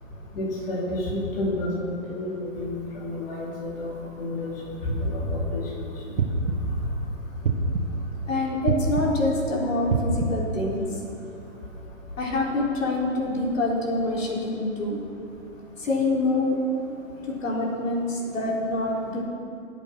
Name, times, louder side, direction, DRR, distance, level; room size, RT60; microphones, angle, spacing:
voice 1, 0.3-6.2 9.6-9.7, left 1 dB, 45° left, -5 dB, 3.1 m, -30 dB
sound 1, 6.2-6.8 7.4-8.1 8.7-9.3 9.9-10.5, right 3 dB, 80° right, 1.8 m, -25 dB
voice 2, 8.3-11.0 12.2-15.0 15.8-16.7 17.2-19.2, left 2 dB, 75° left, -3 dB, 4.0 m, -26 dB
21.5 x 8.2 x 5.9 m, 2.6 s
hypercardioid pair, 170°, 39 cm